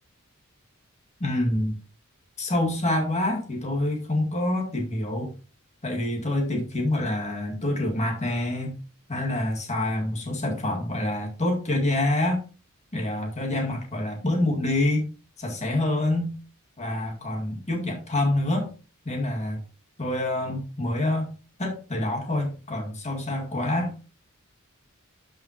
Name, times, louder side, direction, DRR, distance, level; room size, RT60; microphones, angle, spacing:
voice 1, 1.2-1.8 2.4-5.3 5.8-8.8 9.1-12.4 12.9-15.1 15.4-16.3 16.8-18.7 19.1-19.6 20.0-21.3 21.6-23.9, left 1 dB, 30° left, 0 dB, 2.1 m, -26 dB
11.5 x 5.6 x 2.9 m, 0.35 s
head